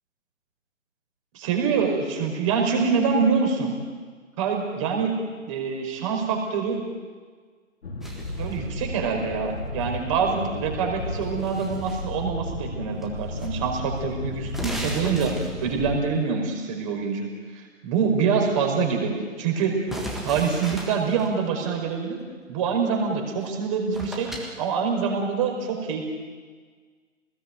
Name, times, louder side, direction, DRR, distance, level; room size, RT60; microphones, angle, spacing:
voice 1, 1.3-3.7 4.4-5.1 5.5-6.8 8.4-15.3 15.6-17.3 17.5-19.8 20.2-22.2 22.5-24.3 24.6-26.1, right 5 dB, 25° right, 2 dB, 5.0 m, -25 dB
sound 1, 7.8-16.0, left 2 dB, 50° left, 3.1 m, -34 dB
sound 2, 8.0-8.7 11.0-12.1 13.0-13.5 13.8-13.9 14.4-15.8 19.9-21.3 23.4-23.5 23.9-24.6, equal, ahead, 1.6 m, -36 dB
28.0 x 20.0 x 9.2 m, 1.5 s
figure-of-eight pair, 150°, 40 cm